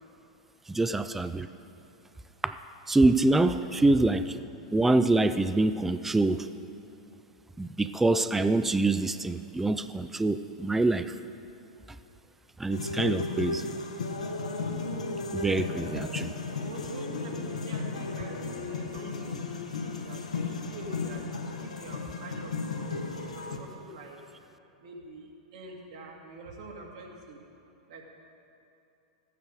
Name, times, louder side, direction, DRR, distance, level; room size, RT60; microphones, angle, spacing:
voice 1, 0.7-1.5 2.4-2.5 2.9-4.4 4.7-6.5 7.6-11.1 12.6-13.7 15.3-16.3, right 2 dB, 5° right, 11 dB, 0.4 m, -25 dB
sound 1, 12.7-23.6, left 3 dB, 75° left, 1.2 m, -34 dB
voice 2, 16.5-19.5 20.0-21.2 21.6-22.5 22.8-24.2 24.8-27.4 27.9-28.0, right 2 dB, 60° right, 0 dB, 2.0 m, -45 dB
14.0 x 8.9 x 4.9 m, 2.8 s
figure-of-eight pair, 95°, 4 cm